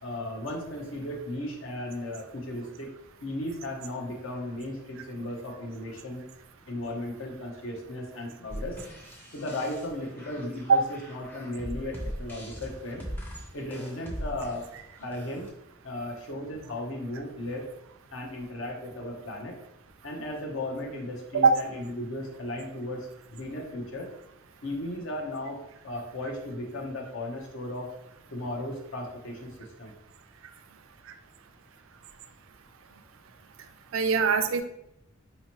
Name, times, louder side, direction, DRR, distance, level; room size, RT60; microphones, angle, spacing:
voice 1, 0.0-2.9 3.2-6.2 6.7-8.8 9.3-13.0 13.5-14.7 15.0-15.5 15.8-17.6 18.1-19.6 20.0-24.1 24.6-25.6 25.8-27.9 28.3-29.5 29.8-29.9, left 1 dB, 70° left, 0 dB, 0.7 m, -36 dB
sound 1, 8.5-15.5, equal, 10° left, 0.4 m, -40 dB
voice 2, 33.9-34.6, right 4 dB, 75° right, 7 dB, 0.4 m, -21 dB
4.2 x 2.8 x 2.8 m, 0.80 s
head